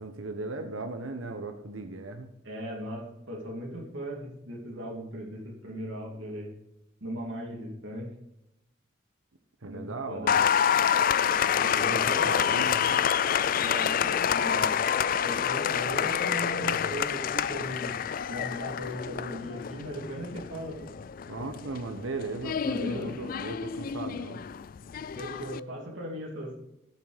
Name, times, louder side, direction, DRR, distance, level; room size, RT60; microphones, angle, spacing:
voice 1, 0.0-2.3 9.6-10.5 11.5-13.0 21.3-24.4, right 3 dB, 85° right, 7 dB, 1.0 m, -37 dB
voice 2, 2.4-6.5 7.0-8.1 9.7-10.6 10.9-11.1 11.8-12.6 13.6-14.8 15.2-17.9 18.3-20.9 22.7-23.1 25.1-26.5, equal, 70° right, -1 dB, 2.6 m, -38 dB
Applause, 10.3-25.6, left 8 dB, 45° left, 0.3 m, -28 dB
15.0 x 6.2 x 5.0 m, 0.86 s
head